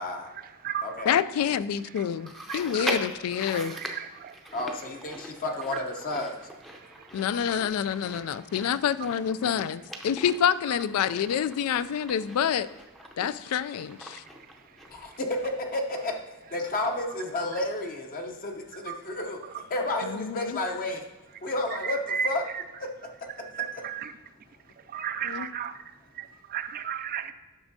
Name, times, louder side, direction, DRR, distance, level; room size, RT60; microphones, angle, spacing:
voice 1, 0.0-1.1 1.8-8.1 9.7-10.1 10.7-10.8 11.2-11.4 11.8-12.3 13.0-14.9 15.7-16.1 16.5-16.6 17.5-17.6 18.7-19.6 21.3-27.3, right 8 dB, 40° right, 11 dB, 0.3 m, -39 dB
voice 2, 1.1-3.7 7.1-12.7 13.2-14.2 20.0-20.4 25.4-25.5, left 8 dB, 75° left, 16 dB, 0.3 m, -27 dB
Chewing mastication, 2.3-15.8 16.1-16.2 17.0-17.1, equal, ahead, 0.6 m, -41 dB
voice 3, 4.5-6.4 15.7-16.1 16.5-19.4 19.7-21.1 21.4-22.0 22.2-22.4, left 2 dB, 40° left, 2 dB, 0.7 m, -31 dB
10.5 x 6.0 x 2.7 m, 1.1 s
head